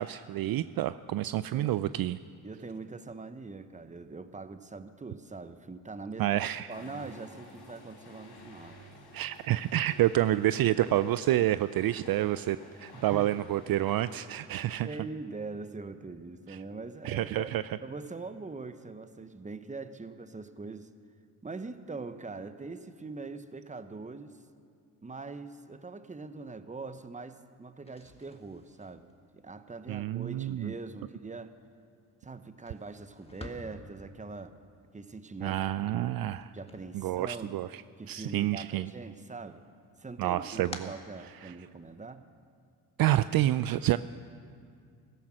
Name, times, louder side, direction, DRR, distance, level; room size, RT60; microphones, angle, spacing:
voice 1, 0.0-2.2 6.2-6.7 9.1-14.9 16.5-16.6 17.0-17.6 29.9-30.7 35.4-36.5 36.9-37.7 38.1-38.9 40.2-40.9 41.4-41.5 43.0-44.0, right 14 dB, 60° right, 15 dB, 0.5 m, -28 dB
voice 2, 1.3-1.9 2.4-6.3 6.7-8.8 12.9-13.4 14.8-17.5 17.8-20.9 21.4-24.4 25.0-31.5 32.2-34.5 34.9-36.1 36.5-37.6 38.0-39.6 40.0-42.3, right 3 dB, 15° right, 11 dB, 1.0 m, -42 dB
sound 1, 6.7-14.9, left 1 dB, 65° left, 4.0 m, -52 dB
sound 2, 27.7-37.7 38.1-38.9 39.3-41.9, left 1 dB, 15° left, 1.8 m, -52 dB
16.0 x 13.5 x 6.3 m, 2.3 s
supercardioid pair, 60°, 42 cm